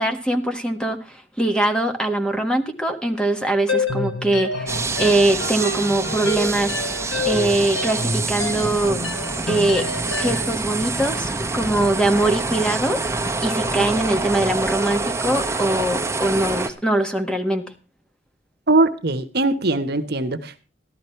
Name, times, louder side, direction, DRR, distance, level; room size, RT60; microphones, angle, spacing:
voice 1, 0.0-6.8 7.2-9.0 9.5-9.9 10.2-13.0 13.4-17.6, right 1 dB, 5° left, 5 dB, 1.5 m, -22 dB
sound 1, 3.7-10.5, left 3 dB, 85° left, 1.6 m, -28 dB
sound 2, 4.7-16.7, right 3 dB, 15° right, 1.2 m, -26 dB
voice 2, 18.7-20.6, right 2 dB, 60° right, 10 dB, 1.2 m, -21 dB
13.5 x 12.5 x 4.5 m, 0.31 s
head